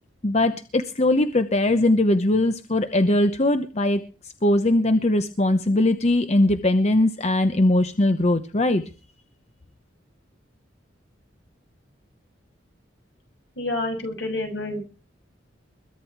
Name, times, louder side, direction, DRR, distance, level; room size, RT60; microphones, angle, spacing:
voice 1, 0.2-4.0 4.4-8.8, left 1 dB, 35° left, 9 dB, 0.9 m, -20 dB
voice 2, 13.6-14.8, left 2 dB, 70° left, 4 dB, 6.9 m, -28 dB
22.0 x 10.5 x 4.7 m, 0.36 s
head